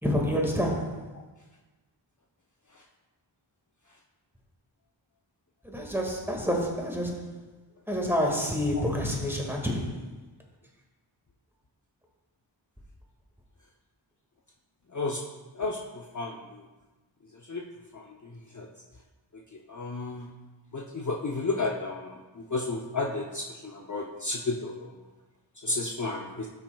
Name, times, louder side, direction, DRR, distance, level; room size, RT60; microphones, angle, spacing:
voice 1, 0.0-1.0 5.6-7.2 7.9-9.9, equal, 5° right, -1 dB, 1.8 m, -28 dB
voice 2, 19.7-20.3 20.7-22.2 22.5-24.9 25.6-26.5, left 3 dB, 40° left, -1 dB, 0.7 m, -31 dB
13.0 x 6.0 x 2.3 m, 1.2 s
wide cardioid pair, 45°, 46 cm